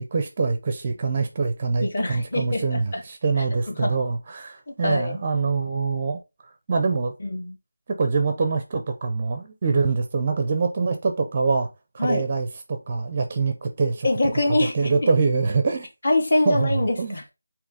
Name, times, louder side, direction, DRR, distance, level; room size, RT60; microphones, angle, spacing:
voice 1, 0.0-6.2 6.7-7.1 8.0-11.7 11.9-14.1 14.6-15.9 16.5-17.2, right 4 dB, 20° right, 0.5 m, -24 dB
voice 2, 1.8-3.0 3.7-4.0 4.7-5.2 7.2-7.6 12.0-12.2 14.0-15.1 16.0-17.2, left 2 dB, 35° left, 1.2 m, -24 dB
8.1 x 3.0 x 3.8 m
figure-of-eight pair, 175°, 0 cm